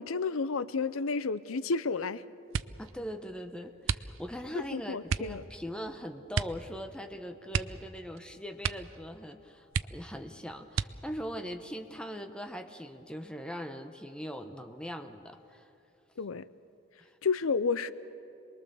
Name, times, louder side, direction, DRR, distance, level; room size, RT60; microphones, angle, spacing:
voice 1, 0.0-2.2 4.7-5.4 16.2-16.5 17.2-17.9, left 4 dB, 80° left, 16 dB, 0.6 m, -31 dB
sound 1, 2.5-2.9 3.8-4.5 5.1-5.4 6.3-6.7 6.9-7.0 7.5-8.2 8.6-9.0 9.3-9.4 9.7-10.2 10.7-11.3 12.0-12.6 13.0-13.4, right 6 dB, 70° right, 0.5 m, -33 dB
voice 2, 2.8-15.7 17.0-17.2, equal, 5° left, 6 dB, 1.0 m, -41 dB
sound 2, 5.2-15.2, left 6 dB, 30° right, 6.9 m, -67 dB
27.5 x 21.0 x 7.0 m, 2.8 s
head